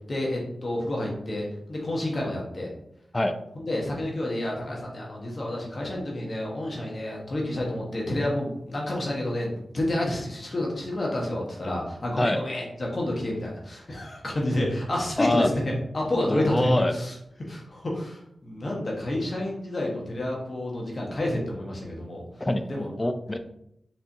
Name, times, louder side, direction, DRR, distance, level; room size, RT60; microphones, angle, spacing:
voice 1, 0.1-2.7 3.5-22.2 22.7-22.9, left 1 dB, 50° left, -2 dB, 1.2 m, -29 dB
voice 2, 15.2-15.5 16.3-16.9 22.4-22.7 23.0-23.4, left 1 dB, 25° left, 9 dB, 0.5 m, -24 dB
4.4 x 3.9 x 2.7 m, 0.75 s
cardioid pair, 50°, 0 cm